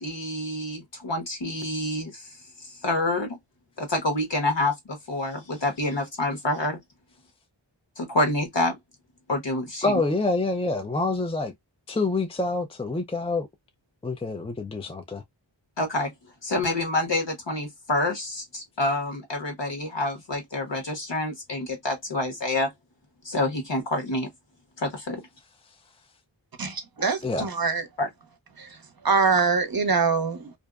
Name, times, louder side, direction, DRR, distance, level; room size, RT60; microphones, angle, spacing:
voice 1, 0.0-2.3 2.6-3.4 3.8-6.8 8.0-8.8 9.3-10.0 15.8-16.1 16.4-22.7 23.2-24.3 24.8-25.2 27.0-27.4 28.0-28.1, left 2 dB, 65° left, 1.1 m, -27 dB
voice 2, 9.8-11.5 11.9-13.5 14.0-15.2 27.2-27.5, left 3 dB, 15° left, 0.3 m, -26 dB
voice 3, 26.6-27.9 28.6-28.7 29.0-30.5, right 5 dB, 50° right, 0.7 m, -24 dB
2.6 x 2.1 x 2.3 m
wide cardioid pair, 55°, 46 cm